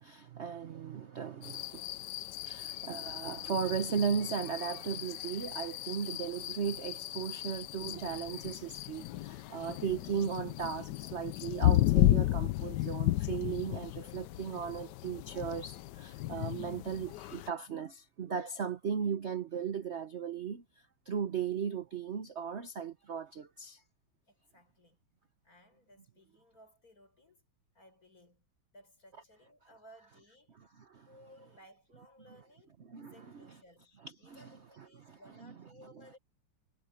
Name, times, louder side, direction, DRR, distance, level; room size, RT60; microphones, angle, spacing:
voice 1, 0.0-1.8 2.4-20.6 21.1-23.8 30.9-31.1 32.9-33.5 34.2-34.5 34.8-35.2, right 7 dB, 50° right, 0.8 m, -37 dB
sound 1, 1.4-17.5, left 15 dB, 80° left, 0.9 m, -34 dB
voice 2, 24.3-25.0 25.4-27.5 27.7-28.4 28.7-30.6 31.1-33.9 34.2-36.2, equal, 40° left, 7.1 m, -60 dB
omnidirectional pair, 2.4 m